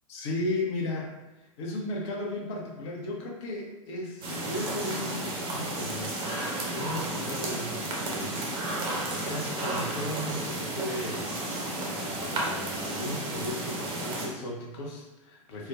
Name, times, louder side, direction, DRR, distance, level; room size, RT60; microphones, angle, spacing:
voice 1, 0.1-1.1 1.4-15.7, left 1 dB, 50° left, 0 dB, 0.8 m, -36 dB
sound 1, 4.2-14.3, right 1 dB, 30° right, 0.8 m, -32 dB
4.4 x 2.2 x 2.3 m, 1.1 s
figure-of-eight pair, 90°, 18 cm